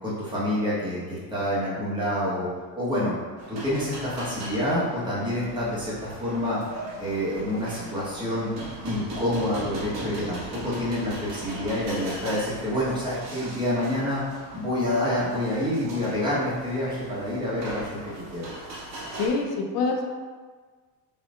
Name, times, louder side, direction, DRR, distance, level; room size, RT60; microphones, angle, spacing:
voice 1, 0.0-2.5 2.7-3.1 3.5-6.6 7.0-8.5 8.8-14.2 14.5-18.5, left 1 dB, 10° right, -9 dB, 1.4 m, -27 dB
sound 1, 3.4-19.3, right 1 dB, 45° right, 1.3 m, -39 dB
voice 2, 19.1-20.0, left 3 dB, 80° left, 1 dB, 0.8 m, -25 dB
5.8 x 3.2 x 2.5 m, 1.4 s
cardioid pair, 150°, 39 cm